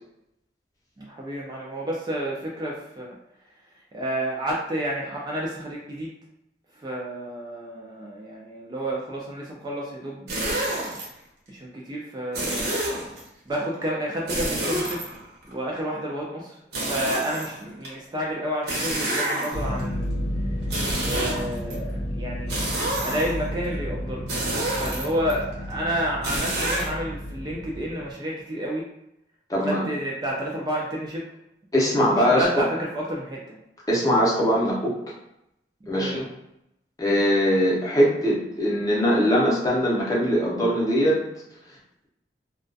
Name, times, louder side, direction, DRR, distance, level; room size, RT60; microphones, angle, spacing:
voice 1, 1.0-3.2 3.9-6.1 6.8-10.8 11.5-12.7 13.5-15.0 15.5-16.6 16.9-20.1 21.0-22.6 23.0-24.3 24.8-28.8 29.5-31.2 32.0-33.6 35.9-36.2, right 1 dB, 25° right, -3 dB, 0.3 m, -30 dB
sound 1, 10.3-11.0 12.3-13.2 14.3-15.5 16.7-17.9 18.7-19.8 20.6-21.7 22.5-23.5 24.3-25.3 26.2-26.9, right 1 dB, 60° right, 0.7 m, -28 dB
sound 2, 19.5-28.1, equal, 60° left, 0.7 m, -32 dB
voice 2, 29.5-29.8 31.7-32.7 33.9-34.9 35.9-36.2 37.0-41.2, equal, 20° left, -5 dB, 0.6 m, -21 dB
2.3 x 2.2 x 2.5 m, 0.83 s
head